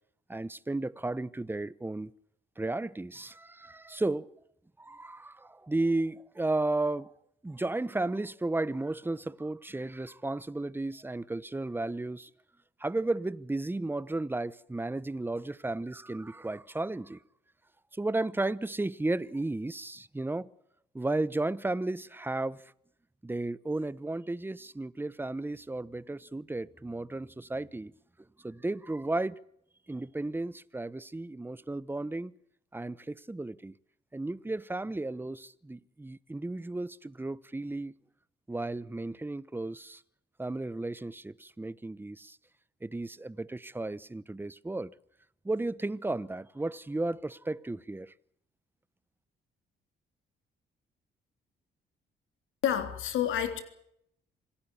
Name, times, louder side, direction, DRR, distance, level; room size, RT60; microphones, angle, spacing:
voice 1, 0.3-2.1 2.6-4.3 4.8-7.1 7.4-12.3 12.8-17.2 17.9-20.5 20.9-22.6 23.2-27.9 28.4-29.4 29.9-32.3 32.7-33.7 34.1-37.9 38.5-40.0 40.4-42.4 42.8-44.9 45.4-48.1, right 2 dB, 10° right, 0.9 m, -34 dB
voice 2, 52.6-53.6, left 10 dB, 85° left, 3.5 m, -29 dB
26.5 x 17.5 x 7.2 m
cardioid pair, 90°, 20 cm